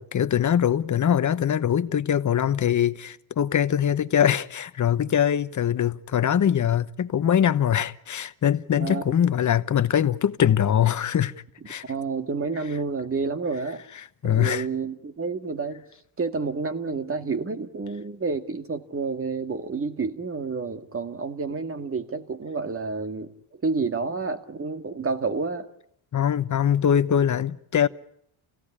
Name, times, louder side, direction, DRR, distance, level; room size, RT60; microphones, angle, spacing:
voice 1, 0.0-11.3 11.7-11.8 14.2-14.7 26.1-27.9, left 9 dB, 35° left, 1.1 m, -22 dB
voice 2, 8.8-9.1 11.9-13.8 14.2-15.9 16.2-23.3 23.6-25.7, right 4 dB, 25° right, 2.1 m, -29 dB
29.0 x 17.0 x 9.9 m
cardioid pair, 120°, 49 cm